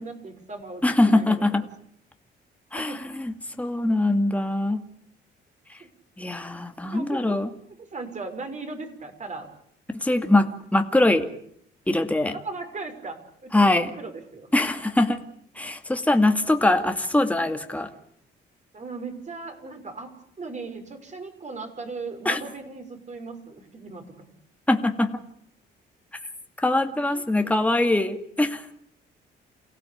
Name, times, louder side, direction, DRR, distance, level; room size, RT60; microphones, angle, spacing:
voice 1, 0.0-1.4 2.7-3.1 5.8-5.9 6.9-7.4 7.9-9.5 12.3-14.5 18.7-24.3 26.9-27.5, right 3 dB, 35° right, 6 dB, 6.0 m, -38 dB
voice 2, 0.8-1.6 2.7-4.8 5.7-5.8 6.2-7.5 10.0-11.3 11.9-12.4 13.5-13.9 14.5-15.2 15.6-17.9 22.3-22.4 24.7-25.1 26.6-28.7, left 2 dB, 5° left, 5 dB, 2.3 m, -22 dB
28.5 x 16.5 x 8.7 m, 0.68 s
cardioid pair, 90°, 20 cm